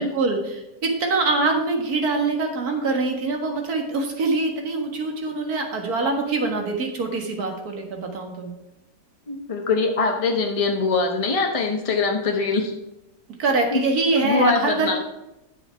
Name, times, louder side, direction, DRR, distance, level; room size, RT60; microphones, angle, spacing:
voice 1, 0.0-8.5 13.4-15.0, right 3 dB, 60° right, 3 dB, 2.1 m, -24 dB
voice 2, 9.3-12.7 13.7-13.8 14.2-15.0, left 4 dB, 35° left, 2 dB, 0.5 m, -23 dB
9.8 x 7.0 x 4.5 m, 0.95 s
omnidirectional pair, 1.9 m